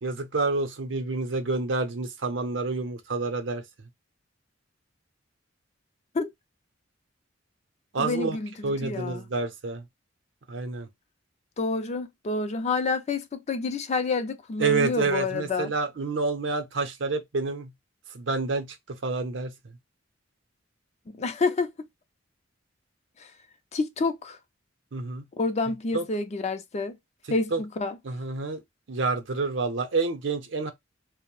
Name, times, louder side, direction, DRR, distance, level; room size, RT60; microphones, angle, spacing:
voice 1, 0.0-3.6 7.9-8.4 8.6-9.8 10.5-10.9 14.6-17.7 18.1-19.5 24.9-25.2 25.9-26.0 27.5-27.6 28.0-28.6 28.9-30.7, right 3 dB, 70° right, 0.6 m, -28 dB
voice 2, 8.0-9.2 11.6-15.7 21.1-21.7 23.2-23.3 23.7-24.4 25.4-27.0 27.3-28.0, left 3 dB, 35° left, 0.4 m, -28 dB
2.6 x 2.0 x 2.9 m
head